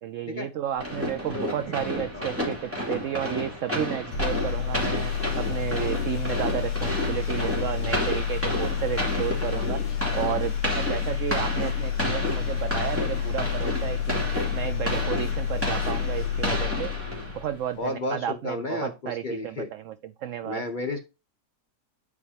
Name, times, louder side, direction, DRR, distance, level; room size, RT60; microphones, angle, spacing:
voice 1, 0.0-9.8 10.1-14.2 14.5-16.9 17.3-20.6, right 10 dB, 75° right, 0.7 m, -32 dB
sound 1, 0.8-17.6, equal, 10° right, 2.6 m, -31 dB
voice 2, 1.3-1.9 2.1-2.3 17.8-19.7 20.4-21.0, left 2 dB, 35° left, 0.8 m, -32 dB
sound 2, 4.1-17.5, left 9 dB, 60° left, 1.7 m, -29 dB
9.6 x 4.8 x 2.8 m
omnidirectional pair, 1.8 m